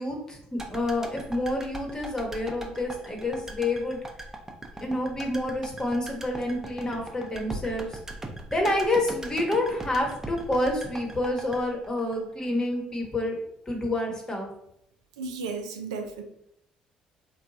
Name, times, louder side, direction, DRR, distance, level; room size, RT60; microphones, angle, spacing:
voice 1, 0.0-4.0 4.8-8.0 8.5-13.4 13.7-14.5, left 1 dB, 25° left, 0 dB, 1.0 m, -28 dB
sound 1, 0.6-12.8 13.0-13.1, right 2 dB, 15° right, 0.5 m, -40 dB
voice 2, 15.2-16.2, right 4 dB, 90° right, 5 dB, 0.3 m, -34 dB
2.8 x 2.2 x 2.6 m, 0.75 s
hypercardioid pair, 60°, 3 cm